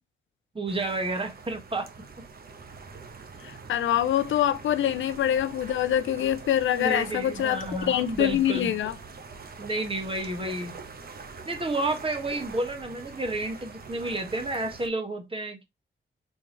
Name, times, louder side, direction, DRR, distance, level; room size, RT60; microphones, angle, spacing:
voice 1, 0.5-1.9 6.7-8.7 9.6-10.7 11.4-15.6, right 2 dB, 30° right, 1.5 m, -31 dB
sound 1, 0.7-14.9, right 4 dB, 50° right, 1.1 m, -44 dB
voice 2, 3.4-8.9, left 11 dB, 85° left, 0.5 m, -25 dB
4.6 x 3.4 x 3.1 m
cardioid pair, 75°, 19 cm